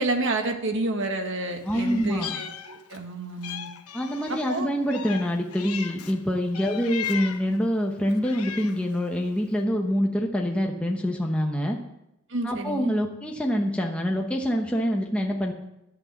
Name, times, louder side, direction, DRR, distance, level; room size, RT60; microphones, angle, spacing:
voice 1, 0.0-3.7 4.3-4.7 12.3-12.9, right 2 dB, 60° right, 5 dB, 1.6 m, -29 dB
voice 2, 1.6-2.4 3.9-11.8 12.4-15.5, equal, 5° left, 1 dB, 0.9 m, -26 dB
Meow, 1.7-3.1 3.4-6.2 6.5-7.5 8.1-8.9, left 9 dB, 85° left, 1.0 m, -37 dB
11.0 x 8.7 x 7.1 m, 0.87 s
head